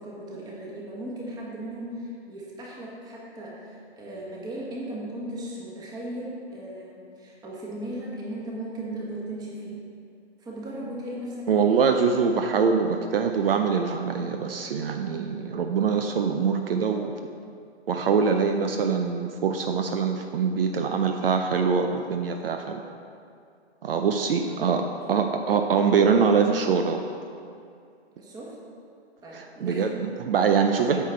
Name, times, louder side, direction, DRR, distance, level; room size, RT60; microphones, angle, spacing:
voice 1, 0.0-9.8 10.4-11.9 12.5-12.9 24.1-24.8 25.1-25.3 28.2-28.6 29.2-29.9 30.3-30.8, right 1 dB, 10° right, -3 dB, 1.4 m, -37 dB
voice 2, 11.5-17.1 17.9-22.8 23.8-27.0 29.3-31.0, right 6 dB, 60° right, 5 dB, 0.6 m, -24 dB
8.9 x 6.6 x 4.4 m, 2.4 s
hypercardioid pair, 145°, 33 cm